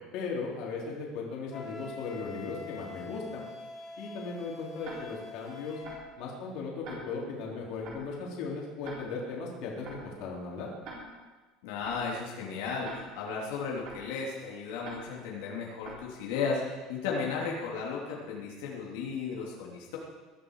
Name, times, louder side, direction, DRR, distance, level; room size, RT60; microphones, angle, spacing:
voice 1, 0.1-3.5 4.0-5.8 6.2-10.7, left 4 dB, 50° left, -2 dB, 3.9 m, -37 dB
Wind instrument woodwind instrument, 1.5-6.0, left 4 dB, 25° left, 2.3 m, -45 dB
Tick-tock, 4.8-5.0 5.8-6.0 6.8-7.0 7.8-8.0 8.8-9.0 9.8-10.0 10.8-11.0 11.8-12.0 12.8-13.0 13.8-14.0 14.8-15.0 15.8-16.0, right 5 dB, 45° right, 4.2 m, -44 dB
voice 2, 11.6-20.0, left 5 dB, 80° left, -3 dB, 3.0 m, -35 dB
21.0 x 12.5 x 4.8 m, 1.3 s
cardioid pair, 175°, 0 cm